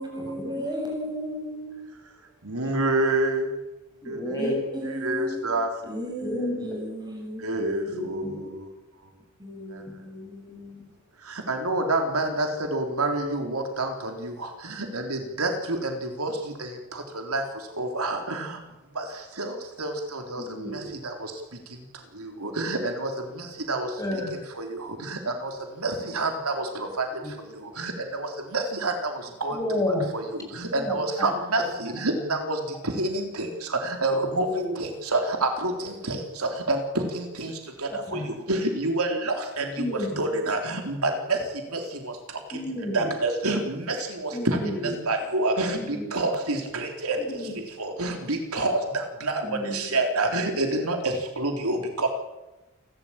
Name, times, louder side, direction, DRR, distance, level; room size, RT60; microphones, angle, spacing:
voice 1, 0.0-1.8 4.4-5.6 5.9-8.3 9.4-10.9, equal, 20° right, 1 dB, 7.5 m, -35 dB
voice 2, 2.4-3.5 4.1-4.4 4.8-5.7 7.4-8.6 9.7-9.8 11.3-17.4 17.8-18.6 19.0-19.1 19.4-20.4 20.7-21.3 22.2-24.2 24.5-25.5 25.8-27.1 27.6-29.6 30.1-41.4 41.7-42.2 42.9-47.2 47.8-52.1, right 2 dB, 90° right, 4 dB, 3.7 m, -28 dB
voice 3, 4.0-4.6 6.2-6.7 7.9-8.4 20.4-20.9 24.0-24.3 27.2-27.3 29.5-30.0 30.7-31.6 34.5-34.7 38.1-38.3 39.8-40.2 42.5-43.1 44.3-45.1 45.8-46.1 47.2-47.5 49.4-49.8, left 1 dB, 15° left, 1 dB, 6.2 m, -31 dB
29.0 x 13.0 x 8.8 m, 1.1 s
head